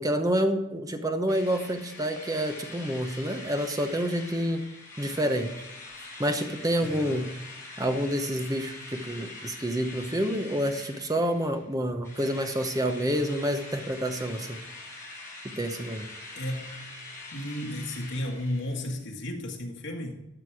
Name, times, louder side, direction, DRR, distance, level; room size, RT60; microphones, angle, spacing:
voice 1, 0.0-4.7 5.0-5.5 6.2-7.3 7.8-14.6 15.6-16.1, equal, 20° right, 0.9 m, -28 dB
Drill, 1.3-11.7 12.0-18.9, left 2 dB, 15° left, 3.7 m, -44 dB
voice 2, 6.8-7.3 16.4-17.0 17.3-20.3, left 1 dB, 70° left, 1.9 m, -34 dB
12.5 x 6.7 x 4.8 m
head